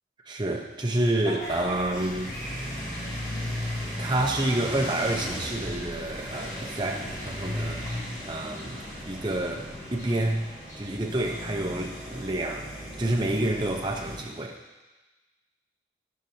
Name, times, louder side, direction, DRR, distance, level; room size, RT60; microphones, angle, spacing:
voice 1, 0.3-2.4 3.3-3.6 4.0-7.8 8.2-14.6, right 1 dB, 25° right, 1 dB, 0.7 m, -29 dB
Vehicle horn car horn honking / Bus, 1.2-7.3, left 1 dB, 40° left, 0.8 m, -43 dB
sound 1, 1.4-14.2, equal, 20° left, 2.3 m, -36 dB
10.5 x 6.5 x 2.8 m, 1.2 s
head